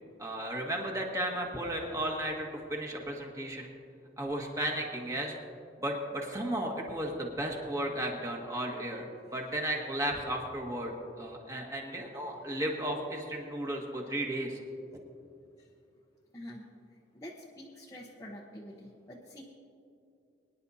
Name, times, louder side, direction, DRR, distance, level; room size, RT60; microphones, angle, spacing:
voice 1, 0.2-3.7 4.2-5.3 5.8-9.1 9.3-14.6, right 1 dB, 15° right, 0 dB, 1.7 m, -34 dB
voice 2, 16.3-16.7 17.1-19.4, left 1 dB, 15° left, -4 dB, 0.9 m, -47 dB
24.0 x 10.5 x 2.8 m, 2.5 s
head